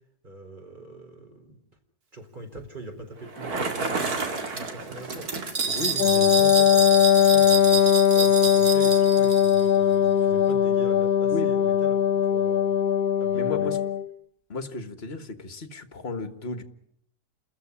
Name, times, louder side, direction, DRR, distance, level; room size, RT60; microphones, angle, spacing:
voice 1, 0.2-1.6 2.1-12.7 13.2-13.7, right 1 dB, 30° right, 3 dB, 4.4 m, -42 dB
Bicycle, 3.2-6.0, right 4 dB, 75° right, 2.9 m, -31 dB
sound 1, 5.5-9.7, right 5 dB, 60° right, 2.8 m, -28 dB
Wind instrument woodwind instrument, 6.0-14.1, left 9 dB, 75° left, 1.7 m, -20 dB
voice 2, 13.3-13.8 14.5-16.6, left 3 dB, 40° left, 10 dB, 1.9 m, -33 dB
29.5 x 14.5 x 9.8 m, 0.71 s
omnidirectional pair, 1.6 m